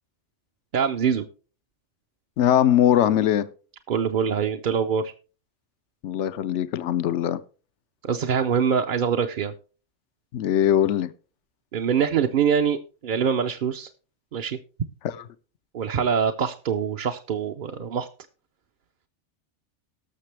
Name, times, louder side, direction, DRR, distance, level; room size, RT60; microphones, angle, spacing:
voice 1, 0.7-1.3 3.9-5.1 8.0-9.5 11.7-13.9 14.3-14.6 15.7-18.1, right 7 dB, 55° right, 0.7 m, -24 dB
voice 2, 2.4-3.5 6.0-7.4 10.3-11.1, left 11 dB, 80° left, 1.0 m, -21 dB
18.5 x 6.6 x 3.3 m
omnidirectional pair, 1.2 m